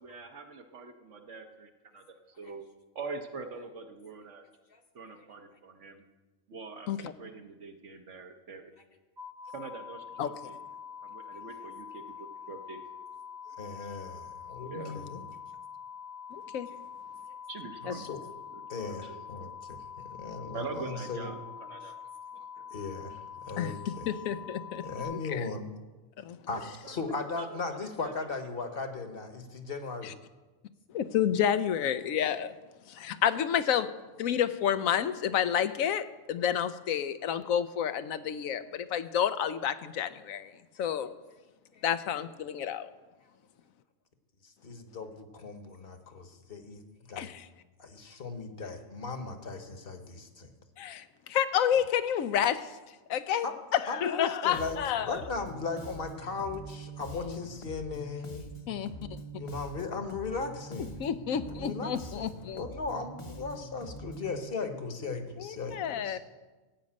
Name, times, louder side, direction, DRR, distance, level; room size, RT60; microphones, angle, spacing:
voice 1, 0.0-2.7 2.9-4.4 4.9-6.0 6.5-8.7 9.5-10.6 11.0-12.0 12.5-12.8 14.6-15.0 17.5-18.1 18.5-19.6 20.5-22.0 22.6-22.7 26.8-28.8, right 4 dB, 65° right, 4 dB, 1.2 m, -44 dB
sound 1, 9.2-25.0, left 7 dB, 90° right, 2.3 m, -45 dB
voice 2, 13.5-15.2 17.9-18.2 18.7-21.3 22.7-24.1 24.8-25.7 26.5-30.1 33.0-33.1 41.7-41.8 44.4-46.8 47.1-47.3 47.8-50.5 53.4-53.5 53.9-54.8 55.1-58.5 59.3-61.0 61.5-66.2, left 4 dB, 45° left, 6 dB, 1.2 m, -37 dB
voice 3, 16.3-16.7 17.9-18.0 23.6-23.7 24.1-24.8 25.1-25.4 26.2-26.4 30.0-30.1 30.9-32.5 32.9-33.9 34.2-40.5 40.8-41.1 41.8-42.9 47.2-47.5 50.8-52.7 53.1-53.5 53.7-55.2 57.2-57.4 58.7-58.9 61.0-62.6 65.4-66.2, left 9 dB, 80° left, 12 dB, 1.1 m, -30 dB
Bass guitar, 54.5-64.4, right 1 dB, 25° left, 0.8 m, -45 dB
14.5 x 5.2 x 8.6 m, 1.2 s
omnidirectional pair, 1.4 m